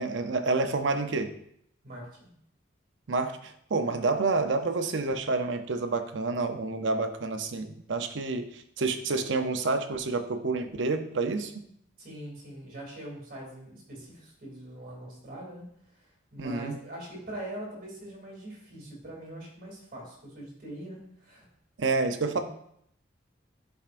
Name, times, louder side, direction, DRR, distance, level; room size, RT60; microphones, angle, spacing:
voice 1, 0.0-1.4 3.1-11.5 16.4-16.8 21.8-22.4, right 3 dB, 75° right, 8 dB, 0.6 m, -29 dB
voice 2, 1.8-2.3 12.0-21.4 22.2-22.4, right 1 dB, 50° right, -3 dB, 2.6 m, -42 dB
10.5 x 4.5 x 2.5 m, 0.71 s
head